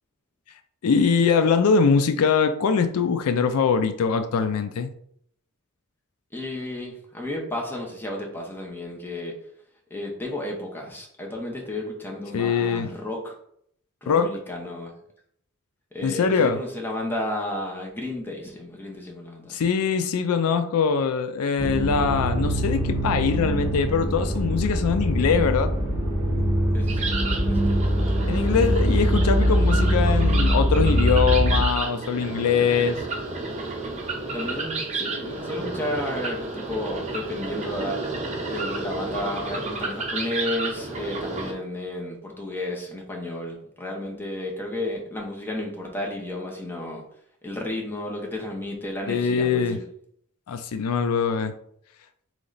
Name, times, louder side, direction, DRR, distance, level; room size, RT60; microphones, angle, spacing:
voice 1, 0.8-4.9 12.3-12.9 14.1-14.3 16.0-16.6 19.5-25.7 28.3-33.0 49.1-49.8 50.5-51.5, left 6 dB, 80° left, 9 dB, 0.4 m, -22 dB
voice 2, 6.3-9.3 9.9-13.3 14.0-14.9 15.9-19.6 26.7-27.7 34.3-38.0 38.5-47.0 47.4-49.8, left 1 dB, 10° left, -1 dB, 0.9 m, -32 dB
sound 1, 21.6-31.6, equal, 10° right, 1.2 m, -23 dB
sound 2, 26.9-41.5, right 3 dB, 30° right, 0.8 m, -31 dB
3.8 x 3.2 x 3.9 m, 0.68 s
head